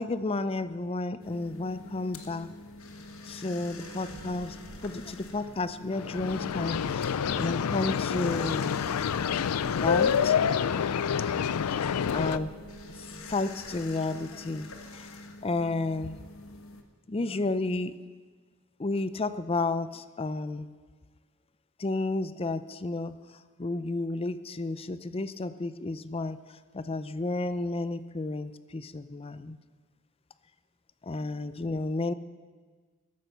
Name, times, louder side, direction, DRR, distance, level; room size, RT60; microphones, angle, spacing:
voice 1, 0.0-2.5 3.3-8.7 9.8-10.5 11.6-11.8 12.1-12.6 12.9-15.1 15.4-16.2 17.1-18.0 18.8-20.7 21.8-29.6 31.0-32.1, left 2 dB, 25° left, 14 dB, 0.5 m, -32 dB
sound 1, 1.2-16.8, left 2 dB, 65° left, 1.3 m, -46 dB
sound 2, 3.8-14.1, right 3 dB, 80° right, 0.8 m, -49 dB
sound 3, 5.9-12.4, left 7 dB, 90° left, 0.4 m, -28 dB
12.5 x 10.0 x 7.0 m, 1.5 s
head